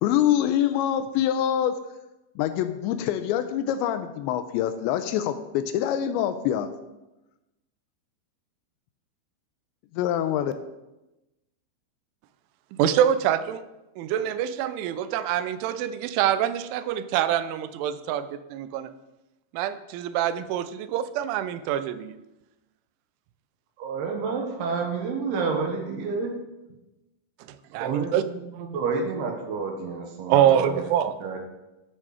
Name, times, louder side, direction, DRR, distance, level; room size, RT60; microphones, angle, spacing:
voice 1, 0.0-1.8 2.4-6.7 9.9-10.5, left 10 dB, 85° left, 10 dB, 2.7 m, -25 dB
voice 2, 12.7-13.6 14.0-18.9 19.5-22.1 27.7-28.2 30.3-31.1, right 10 dB, 90° right, 12 dB, 3.1 m, -25 dB
voice 3, 23.8-26.3 27.8-30.8 31.2-31.4, right 4 dB, 70° right, 2 dB, 2.9 m, -29 dB
11.0 x 7.6 x 4.8 m, 0.99 s
omnidirectional pair, 5.4 m